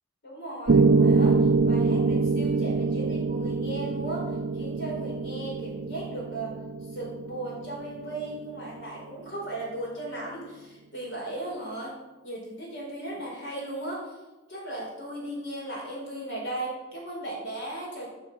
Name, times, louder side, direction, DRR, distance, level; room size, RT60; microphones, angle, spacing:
voice 1, 0.2-6.6 6.9-12.0 12.2-14.2 14.5-18.1, right 1 dB, 65° left, -3 dB, 4.5 m, -36 dB
Piano, 0.7-8.7, right 4 dB, 70° right, 0.5 m, -25 dB
9.7 x 6.2 x 7.4 m, 1.1 s
head